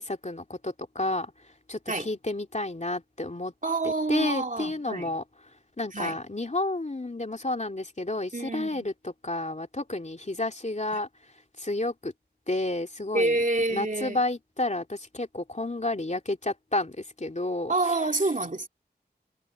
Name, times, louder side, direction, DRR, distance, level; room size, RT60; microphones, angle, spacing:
voice 1, 0.0-3.5 3.8-5.2 5.8-11.1 11.6-12.1 12.5-13.4 13.7-18.0, left 2 dB, 40° left, 2.7 m, -31 dB
voice 2, 3.6-5.1 5.9-6.2 8.3-8.9 10.9-11.0 13.1-14.2 17.7-18.7, right 2 dB, 45° right, 2.6 m, -28 dB
wide cardioid pair, 45°, 18 cm